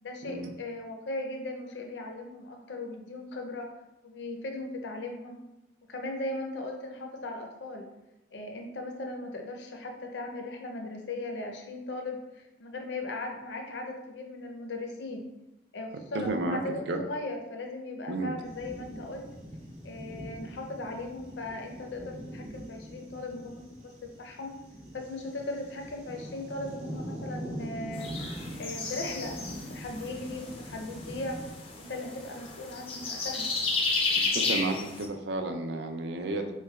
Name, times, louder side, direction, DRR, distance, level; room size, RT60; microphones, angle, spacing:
voice 1, 0.0-3.7 4.0-5.4 5.9-7.9 8.3-15.2 15.7-19.3 19.8-24.6 24.9-28.1 28.6-31.4 31.8-33.5, left 2 dB, 80° left, 3 dB, 0.5 m, -38 dB
voice 2, 16.1-16.6 16.9-17.0 18.1-18.3 34.3-36.5, right 2 dB, 70° right, 5 dB, 0.4 m, -32 dB
sound 1, 18.4-31.5, equal, 40° right, 0.8 m, -43 dB
sound 2, 27.9-35.1, left 3 dB, 30° left, 0.4 m, -33 dB
3.6 x 3.2 x 2.3 m, 0.94 s
head